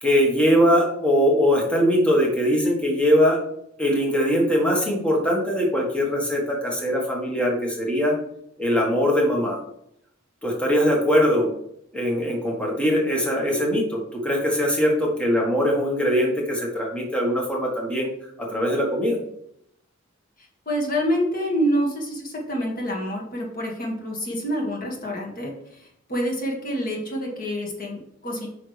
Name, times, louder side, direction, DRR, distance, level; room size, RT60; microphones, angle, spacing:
voice 1, 0.0-3.4 3.8-8.1 8.6-9.6 10.4-11.5 11.9-18.1 18.4-19.2, equal, 5° left, -2 dB, 1.5 m, -21 dB
voice 2, 20.7-28.5, equal, 45° left, -1 dB, 2.0 m, -27 dB
8.5 x 5.7 x 3.4 m, 0.75 s
head